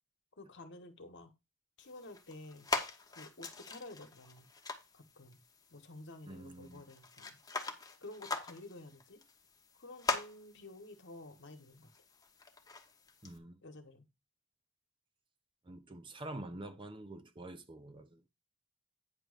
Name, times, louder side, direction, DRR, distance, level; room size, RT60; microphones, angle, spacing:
voice 1, 0.4-1.3 1.8-2.7 3.1-4.5 4.9-5.4 5.7-7.4 8.0-9.2 9.8-11.9 13.6-14.0, left 2 dB, 55° left, 1.2 m, -51 dB
sound 1, 1.8-13.4, left 3 dB, 15° left, 0.9 m, -43 dB
voice 2, 6.3-6.8 13.2-13.6 15.6-18.3, right 1 dB, 25° right, 0.6 m, -47 dB
9.2 x 3.1 x 6.5 m
head